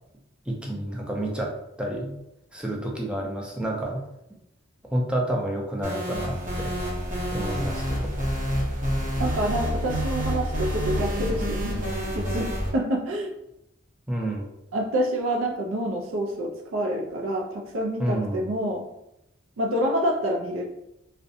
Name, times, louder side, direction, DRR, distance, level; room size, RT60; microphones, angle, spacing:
voice 1, 0.5-2.1 2.5-4.0 4.9-6.8 7.3-8.1 14.1-14.5 18.0-18.4, right 1 dB, 5° right, -2 dB, 0.4 m, -29 dB
sound 1, 5.8-12.7, equal, 40° right, 0.7 m, -28 dB
voice 2, 9.2-11.8 12.1-13.3 14.7-18.9 19.6-20.6, equal, 80° right, 2 dB, 0.4 m, -27 dB
2.5 x 2.1 x 2.6 m, 0.84 s
head